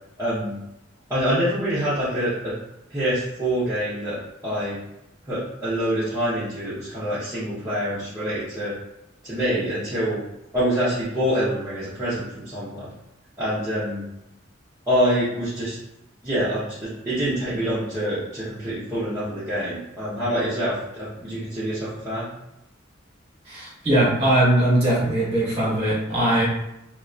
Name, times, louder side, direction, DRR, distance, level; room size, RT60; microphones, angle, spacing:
voice 1, 0.2-0.5 1.1-2.5 2.9-4.2 4.4-4.8 5.3-8.7 9.2-10.2 10.5-12.9 13.4-14.0 14.9-15.8 16.2-22.3, equal, 15° right, -13 dB, 0.7 m, -26 dB
voice 2, 23.5-26.4, right 1 dB, 30° right, -8 dB, 1.3 m, -20 dB
2.6 x 2.2 x 2.3 m, 0.86 s
head